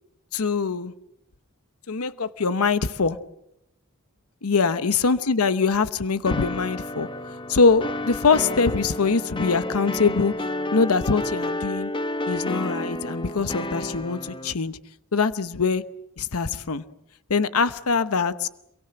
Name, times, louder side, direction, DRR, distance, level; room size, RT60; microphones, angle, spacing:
voice 1, 0.3-0.9 1.9-3.2 4.4-7.1 7.5-10.3 10.7-11.9 12.3-14.8 15.1-15.8 16.2-16.8 17.3-18.5, left 4 dB, 90° left, 14 dB, 0.9 m, -23 dB
sound 1, 6.3-14.5, left 1 dB, 25° left, 0.9 m, -30 dB
27.0 x 23.5 x 7.7 m, 0.82 s
head